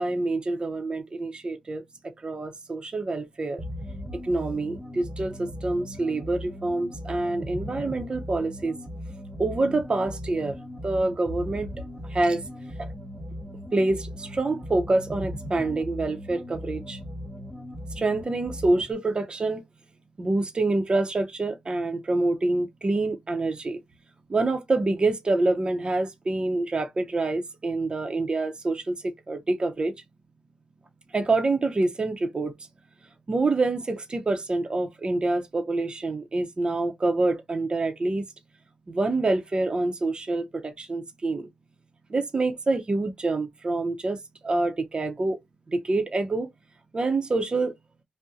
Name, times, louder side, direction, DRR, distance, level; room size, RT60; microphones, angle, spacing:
voice 1, 0.0-1.8 2.2-3.6 4.1-8.8 9.4-10.6 10.8-11.7 12.1-12.4 12.8-12.9 13.7-17.0 18.0-19.6 20.2-23.8 24.3-29.9 31.1-32.5 33.3-38.2 38.9-41.5 42.1-45.4 45.7-46.5 46.9-47.7, right 2 dB, 40° right, 0.7 m, -26 dB
sound 1, 3.6-18.9, equal, 20° right, 1.1 m, -38 dB
2.7 x 2.1 x 3.7 m
cardioid pair, 65°, 2 cm